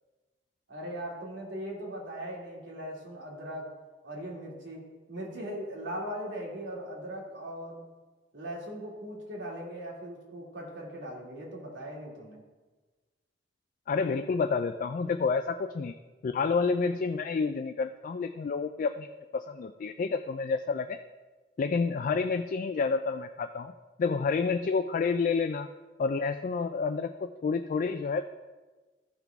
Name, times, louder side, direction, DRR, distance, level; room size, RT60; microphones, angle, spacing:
voice 1, 0.7-3.7 4.0-7.9 8.3-12.4, equal, 85° right, -2 dB, 2.3 m, -39 dB
voice 2, 13.9-15.9 16.2-19.1 19.3-21.0 21.6-23.7 24.0-25.7 26.0-28.2, left 4 dB, 45° left, 7 dB, 0.3 m, -29 dB
14.0 x 5.8 x 3.5 m, 1.3 s
head